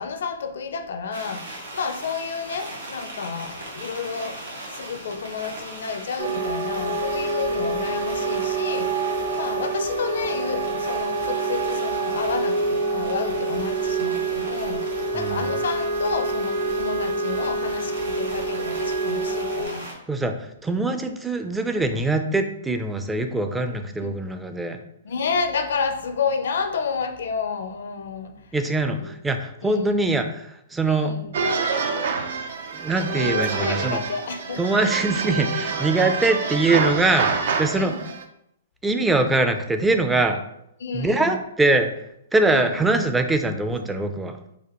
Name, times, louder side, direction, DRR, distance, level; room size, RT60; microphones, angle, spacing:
voice 1, 0.0-4.4 4.7-8.9 9.3-14.8 15.1-19.9 24.0-24.1 25.0-28.3 29.0-29.1 29.6-30.1 30.8-31.3 33.1-34.6 37.7-38.1 40.8-41.4 42.4-42.9, left 5 dB, 70° left, 7 dB, 0.5 m, -30 dB
sound 1, 1.1-19.9, right 1 dB, 90° right, 1.3 m, -39 dB
sound 2, 6.2-19.6, right 3 dB, 45° right, 0.8 m, -26 dB
voice 2, 15.1-15.5 20.1-24.8 28.5-31.1 32.7-34.0 34.6-37.9 38.8-40.4 40.9-41.9 42.3-44.4, right 2 dB, 10° right, 6 dB, 0.4 m, -23 dB
sound 3, 31.3-38.2, right 5 dB, 70° right, 0.4 m, -27 dB
4.1 x 2.5 x 2.9 m, 0.78 s
hypercardioid pair, 130°, 0 cm